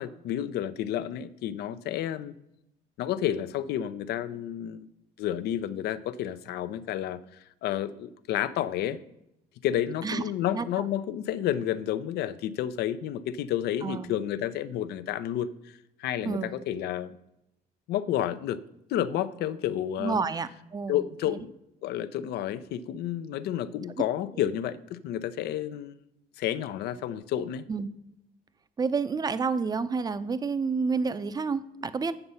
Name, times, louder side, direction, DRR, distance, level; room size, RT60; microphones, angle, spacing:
voice 1, 0.0-2.3 3.0-4.9 5.2-7.2 7.6-9.0 9.6-15.5 16.0-17.1 17.9-18.6 18.9-20.2 20.9-21.5 21.8-26.0 26.4-27.6, left 11 dB, 75° left, 14 dB, 0.6 m, -30 dB
voice 2, 20.0-21.4 27.7-27.9 28.8-32.1, right 5 dB, 25° right, 13 dB, 0.5 m, -29 dB
7.9 x 7.0 x 5.5 m, 0.84 s
cardioid pair, 110°, 17 cm